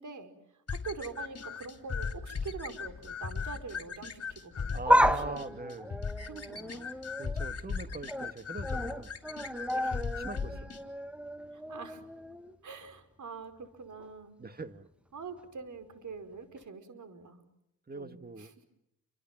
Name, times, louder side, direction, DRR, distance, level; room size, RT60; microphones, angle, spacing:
voice 1, 0.0-5.4 6.2-6.9 9.7-10.0 10.5-10.6 11.5-12.0 12.6-14.4 15.1-17.4 17.9-18.5, right 5 dB, 60° right, 9 dB, 5.4 m, -45 dB
sound 1, 0.7-10.8, left 5 dB, 45° left, 4.5 m, -38 dB
sound 2, 4.6-7.5 7.9-8.3 8.6-12.6 12.9-13.0 14.0-14.1, equal, 5° right, 1.6 m, -32 dB
voice 2, 4.7-6.1 7.2-9.2 10.3-10.5 14.4-14.9 17.9-18.5, right 3 dB, 25° right, 10 dB, 2.2 m, -41 dB
29.5 x 26.0 x 7.6 m, 0.83 s
cardioid pair, 70°, 34 cm